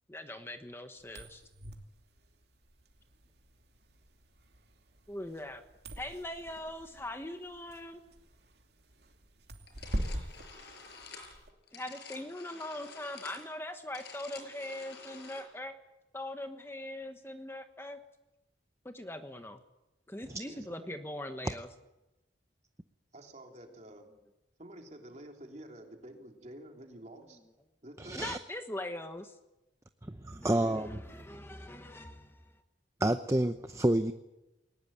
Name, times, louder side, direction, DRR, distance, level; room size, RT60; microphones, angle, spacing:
voice 1, 0.1-1.4 5.1-5.6 6.0-8.0 11.7-15.7 16.1-18.0 18.8-19.6 20.1-21.7 28.1-29.3 30.4-32.6, left 1 dB, 15° left, 7 dB, 1.2 m, -41 dB
sound 1, 1.0-11.5, equal, 60° right, 2.7 m, -43 dB
sound 2, 9.7-15.4, left 4 dB, 60° left, 5.8 m, -50 dB
voice 2, 20.4-21.0 23.1-24.1 24.6-27.4 27.8-28.2, right 1 dB, 40° right, 3 dB, 3.4 m, -49 dB
voice 3, 28.0-28.4 30.0-31.2 33.0-34.1, right 1 dB, 15° right, 9 dB, 0.7 m, -30 dB
21.5 x 19.5 x 9.0 m, 0.97 s
head